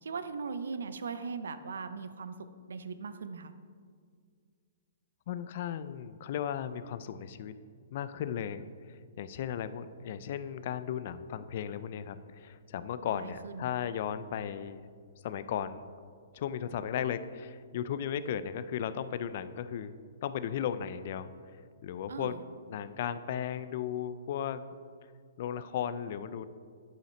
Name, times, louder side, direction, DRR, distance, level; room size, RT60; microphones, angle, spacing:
voice 1, 0.0-2.4 2.7-3.5 13.0-13.7 22.1-22.4, right 5 dB, 90° right, 11 dB, 0.5 m, -39 dB
voice 2, 5.3-7.5 7.9-14.8 15.2-15.9 16.3-19.9 20.2-21.3 21.8-22.4 22.7-24.6 25.4-26.4, left 9 dB, 45° left, 13 dB, 0.3 m, -36 dB
7.8 x 5.7 x 4.3 m, 2.1 s
hypercardioid pair, 160°, 0 cm